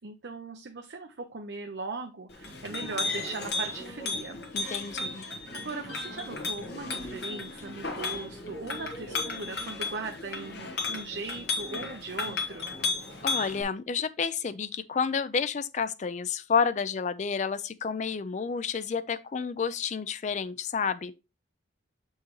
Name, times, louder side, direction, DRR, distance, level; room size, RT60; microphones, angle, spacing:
voice 1, 0.0-4.4 4.8-5.0 5.2-12.7, right 3 dB, 60° right, 0.6 m, -39 dB
Chink clink, 2.3-13.6, left 3 dB, 60° left, 1.4 m, -34 dB
voice 2, 4.5-5.2 13.2-21.1, left 5 dB, 40° left, 0.4 m, -30 dB
7.0 x 4.5 x 3.1 m
head